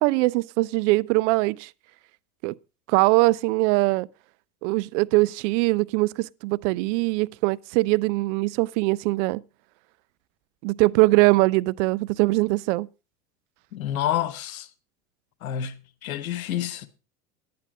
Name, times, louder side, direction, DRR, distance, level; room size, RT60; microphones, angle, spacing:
voice 1, 0.0-1.7 2.4-2.5 2.9-4.1 4.6-9.4 10.6-12.9, right 22 dB, 60° right, 0.5 m, -22 dB
voice 2, 13.7-14.7 15.4-16.9, left 11 dB, 75° left, 1.2 m, -29 dB
11.0 x 9.5 x 4.9 m
hypercardioid pair, 85°, 42 cm